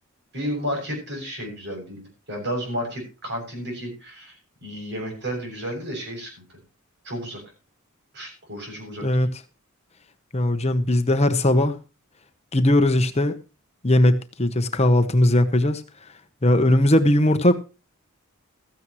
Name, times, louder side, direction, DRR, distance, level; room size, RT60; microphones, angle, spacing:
voice 1, 0.3-4.4 4.6-6.4 7.0-7.4 8.1-9.3, equal, 50° right, 7.2 m, -32 dB
voice 2, 10.3-11.8 12.5-13.3 13.8-15.8 16.4-17.6, left 1 dB, 30° left, 0.9 m, -19 dB
16.0 x 14.0 x 3.1 m
head